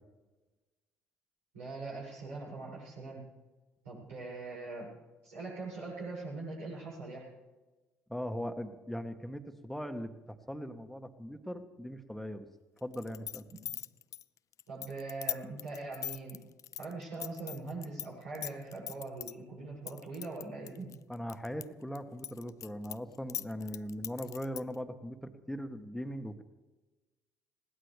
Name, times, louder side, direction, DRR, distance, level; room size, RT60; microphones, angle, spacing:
voice 1, 1.5-3.2 3.8-4.9 5.2-7.3 14.7-16.4 16.8-20.9, right 3 dB, 80° right, -7 dB, 7.2 m, -42 dB
voice 2, 8.1-12.5 12.8-13.5 21.1-26.4, equal, 5° left, 7 dB, 1.5 m, -40 dB
sound 1, 12.9-18.1 18.3-19.3 19.9-21.6 22.0-24.8, left 11 dB, 50° left, 0.4 m, -40 dB
20.5 x 17.5 x 3.5 m, 1.2 s
figure-of-eight pair, 50°, 7 cm